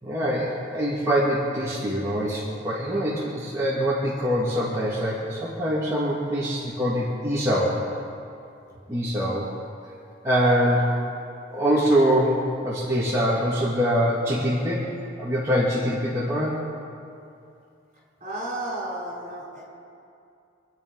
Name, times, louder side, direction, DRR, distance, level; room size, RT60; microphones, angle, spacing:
voice 1, 0.0-7.8 8.9-9.5 10.2-10.9 11.5-14.9 15.2-16.6, equal, 15° right, -9 dB, 2.4 m, -24 dB
voice 2, 18.2-19.7, right 1 dB, 40° right, -4 dB, 4.8 m, -32 dB
26.5 x 9.4 x 5.4 m, 2.5 s
head